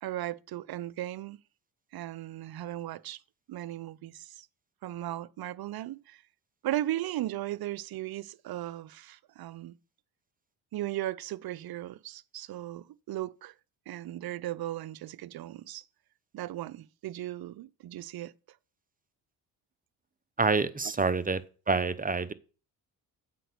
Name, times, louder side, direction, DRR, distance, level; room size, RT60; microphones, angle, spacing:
voice 1, 0.0-1.4 1.9-3.2 3.5-4.5 4.8-6.2 6.6-9.7 10.7-13.5 13.9-15.8 16.3-18.3, right 14 dB, 55° right, 0.6 m, -37 dB
voice 2, 20.4-21.4 21.7-22.3, right 4 dB, 20° right, 0.7 m, -27 dB
7.6 x 5.1 x 6.6 m
supercardioid pair, 65°, 45 cm